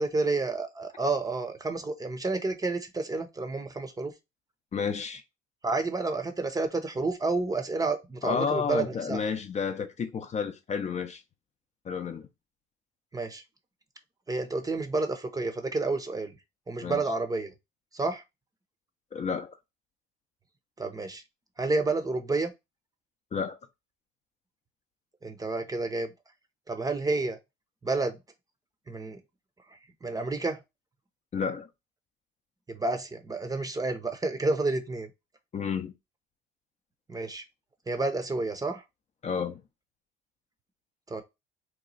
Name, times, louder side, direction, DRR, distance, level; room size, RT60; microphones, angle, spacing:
voice 1, 0.0-4.1 5.6-9.2 13.1-13.4 14.3-16.4 16.7-17.5 17.9-18.2 20.8-21.2 21.6-22.5 25.2-26.1 26.7-27.4 27.8-28.2 28.9-29.2 30.0-30.6 32.7-35.1 37.1-37.4 37.9-38.8 41.1-41.2, right 3 dB, 15° right, 0.7 m, -30 dB
voice 2, 4.7-5.2 8.2-11.2 11.8-12.3 16.8-17.0 19.1-19.5 23.3-23.6 31.3-31.7 35.5-35.9 39.2-39.6, left 6 dB, 35° left, 0.6 m, -31 dB
3.0 x 2.3 x 3.9 m
supercardioid pair, 95°, 21 cm